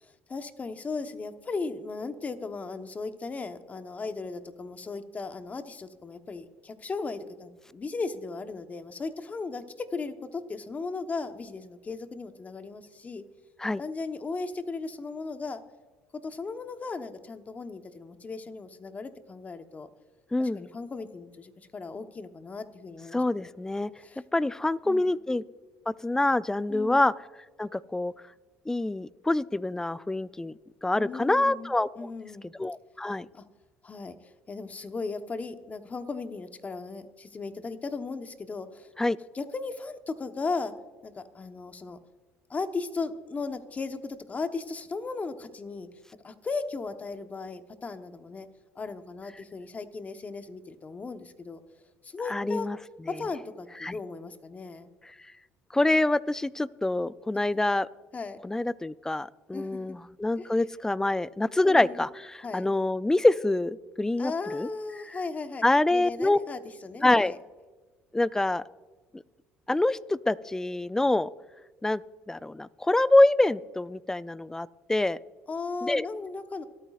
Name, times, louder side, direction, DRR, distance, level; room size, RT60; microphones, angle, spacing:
voice 1, 0.0-13.2 13.8-15.6 16.2-19.9 20.4-23.5 24.0-24.2 24.8-25.1 26.7-27.0 31.0-32.5 33.3-33.4 33.8-38.9 39.3-40.7 41.0-42.0 42.5-45.9 46.2-48.5 48.7-51.6 52.0-52.7 53.1-54.9 57.3-57.4 58.1-58.4 59.5-59.8 60.4-60.5 61.6-62.0 62.4-62.7 64.2-65.6 65.9-67.4 75.5-76.6, left 4 dB, 30° left, 9 dB, 1.0 m, -36 dB
voice 2, 20.3-20.7 23.1-23.9 24.3-25.4 26.0-27.1 27.6-28.1 28.7-30.5 30.8-31.9 32.6-33.3 39.0-39.2 52.3-52.8 53.8-54.0 55.7-57.9 58.4-64.7 65.6-66.4 67.0-67.3 68.1-68.6 69.1-69.2 69.7-71.3 71.8-72.0 72.3-75.2 75.8-76.1, left 2 dB, 10° left, 18 dB, 0.4 m, -25 dB
25.5 x 9.2 x 2.5 m, 1.3 s
supercardioid pair, 85°, 5 cm